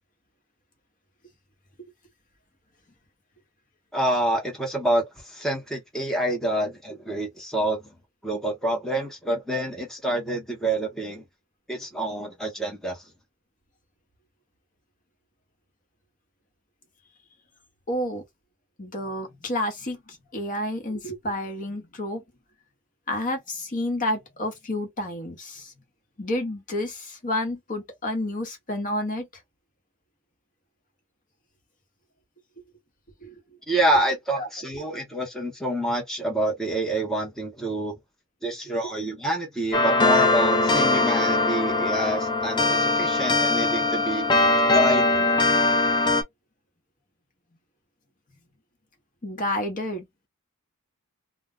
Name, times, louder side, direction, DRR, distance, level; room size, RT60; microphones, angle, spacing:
voice 1, 3.9-7.8 8.2-11.2 11.7-13.0 33.7-38.0 38.4-44.3 44.7-45.3, right 1 dB, ahead, 0.8 m, -27 dB
voice 2, 17.9-18.2 18.8-22.2 23.1-25.7 26.2-29.3 33.2-33.4 34.3-34.5 34.9-35.0 49.2-50.3, left 1 dB, 40° left, 1.0 m, -30 dB
sound 1, 39.7-46.2, left 2 dB, 20° left, 0.4 m, -21 dB
2.2 x 2.2 x 3.6 m
head